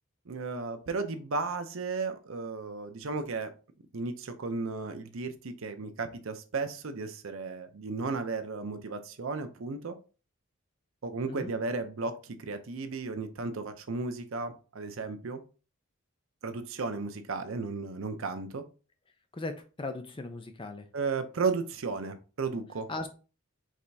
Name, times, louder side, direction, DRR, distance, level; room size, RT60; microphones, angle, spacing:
voice 1, 0.3-3.5 3.9-10.0 11.0-15.4 16.4-18.6 20.9-22.9, right 4 dB, 65° right, 8 dB, 0.6 m, -34 dB
voice 2, 19.8-20.9 22.9-23.1, left 2 dB, 25° left, 7 dB, 0.5 m, -37 dB
4.9 x 3.3 x 2.7 m, 0.34 s
head